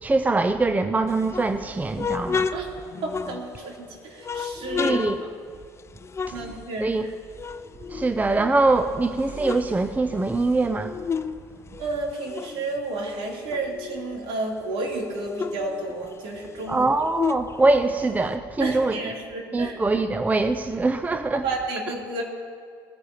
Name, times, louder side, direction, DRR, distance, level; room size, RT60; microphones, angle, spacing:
voice 1, 0.0-2.5 4.8-5.2 6.3-6.4 6.8-7.0 7.9-10.9 16.7-19.0 19.5-21.4, right 3 dB, 15° right, 0.6 m, -23 dB
sound 1, 1.1-3.8 4.2-7.1 7.4-8.7 9.1-11.4 11.7-14.2 14.6-14.7 14.9-18.3, left 6 dB, 25° left, 0.6 m, -32 dB
voice 2, 3.0-5.0 6.3-7.1 11.8-16.9 18.6-19.8 21.4-22.2, right 2 dB, 60° right, 3.3 m, -31 dB
20.5 x 14.0 x 3.0 m
hypercardioid pair, 65°, 10 cm